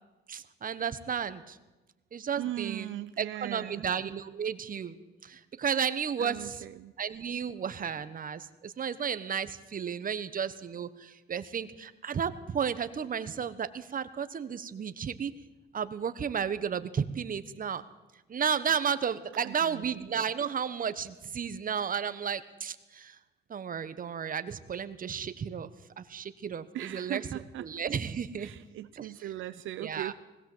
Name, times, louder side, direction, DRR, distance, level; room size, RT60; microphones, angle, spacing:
voice 1, 0.3-1.6 2.1-6.6 7.0-15.3 15.7-17.8 18.3-23.2 23.5-28.5 29.0-29.1 29.8-30.1, right 7 dB, 45° right, 13 dB, 1.2 m, -33 dB
voice 2, 2.4-3.9 6.2-6.9 19.4-19.9 26.7-27.7 28.4-30.1, right 13 dB, 80° right, 12 dB, 0.7 m, -39 dB
20.0 x 16.5 x 8.0 m, 1.1 s
cardioid pair, 90°, 20 cm